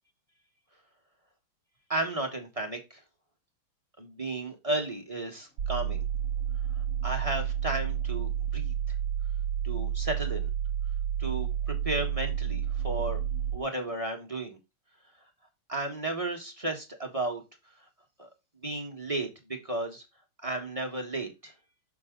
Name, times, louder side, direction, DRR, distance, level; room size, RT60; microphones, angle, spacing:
voice 1, 1.9-3.0 4.0-6.0 7.0-8.7 9.6-10.5 11.2-13.2 13.5-14.6 15.7-17.4 18.2-18.3 18.6-20.0 20.4-21.5, right 2 dB, 20° right, 2 dB, 1.4 m, -33 dB
sound 1, 5.0-14.0, left 4 dB, 25° left, 4.0 m, -60 dB
sound 2, 5.6-13.6, right 9 dB, 65° right, 1.6 m, -30 dB
6.7 x 6.1 x 3.8 m, 0.24 s
omnidirectional pair, 2.4 m